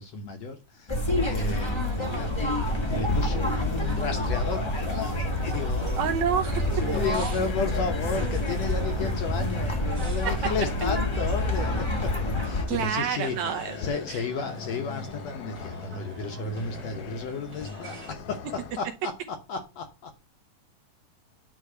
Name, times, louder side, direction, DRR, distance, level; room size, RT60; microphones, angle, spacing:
voice 1, 0.0-6.1 6.9-12.2 12.4-20.3, left 4 dB, 70° left, 1.7 m, -34 dB
sound 1, 0.9-12.6, left 1 dB, 30° left, 0.4 m, -27 dB
sound 2, 1.2-18.1, right 4 dB, 35° right, 1.9 m, -46 dB
voice 2, 6.0-6.6 7.2-7.3 12.7-13.8 14.1-14.2, right 8 dB, 70° right, 1.9 m, -28 dB
sound 3, 6.3-18.8, left 6 dB, 85° left, 1.3 m, -42 dB
9.8 x 3.5 x 6.5 m
omnidirectional pair, 3.8 m